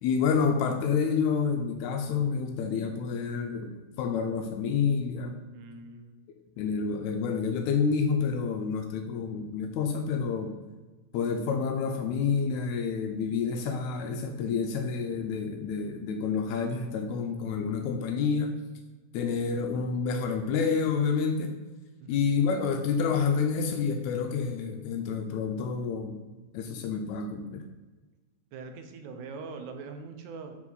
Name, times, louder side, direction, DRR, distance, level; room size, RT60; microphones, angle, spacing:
voice 1, 0.0-3.7 4.0-5.4 6.6-10.5 11.1-18.6 19.1-21.5 22.1-26.2 26.5-27.7, left 5 dB, 85° left, 4 dB, 1.9 m, -28 dB
voice 2, 5.5-6.2 22.0-22.2 28.5-30.6, right 4 dB, 85° right, 6 dB, 2.1 m, -42 dB
5.9 x 4.9 x 3.9 m, 1.2 s
omnidirectional pair, 3.3 m